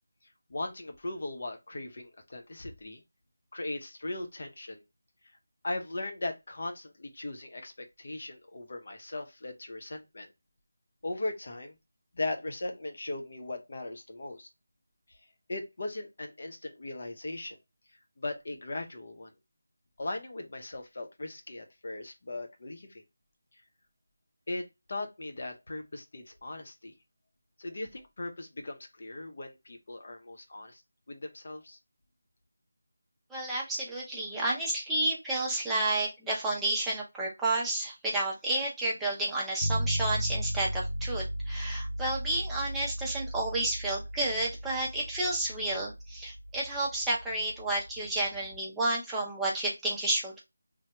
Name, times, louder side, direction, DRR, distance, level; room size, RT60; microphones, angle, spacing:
voice 1, 0.5-3.0 3.5-4.8 5.6-10.3 11.0-11.8 12.1-14.5 15.1-15.2 15.5-17.6 18.2-19.3 20.0-23.0 24.5-26.9 27.6-30.8 31.1-31.8, left 2 dB, 55° left, 0.7 m, -38 dB
voice 2, 33.3-50.4, right 2 dB, 5° right, 0.6 m, -31 dB
sound 1, 39.6-48.6, equal, 90° left, 0.5 m, -36 dB
3.3 x 2.2 x 2.9 m
figure-of-eight pair, 170°, 0 cm